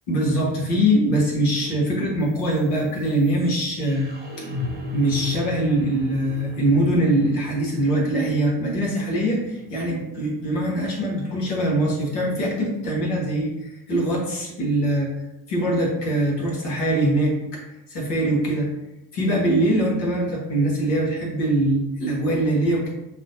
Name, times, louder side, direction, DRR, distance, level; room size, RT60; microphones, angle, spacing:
voice 1, 0.1-4.1 4.9-15.1 15.5-17.6 17.9-18.7 19.1-22.9, right 1 dB, 85° left, -3 dB, 1.3 m, -22 dB
sound 1, 2.2-12.2, left 4 dB, 20° right, 0.8 m, -37 dB
6.2 x 2.2 x 2.6 m, 0.95 s
hypercardioid pair, 60°, 49 cm